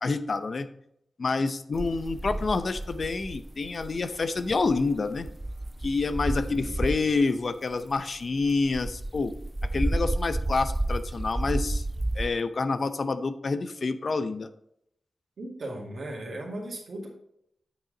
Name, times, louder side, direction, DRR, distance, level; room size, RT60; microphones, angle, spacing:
voice 1, 0.0-0.7 1.2-5.3 5.8-9.4 9.7-11.8 12.2-14.5, left 3 dB, 55° left, 11 dB, 0.6 m, -28 dB
sound 1, 1.7-7.2 7.7-12.3, right 1 dB, 20° right, 0.3 m, -31 dB
voice 2, 6.3-7.0 15.4-17.1, right 1 dB, 75° right, -4 dB, 2.1 m, -38 dB
8.6 x 5.9 x 3.9 m, 0.75 s
wide cardioid pair, 90°, 0 cm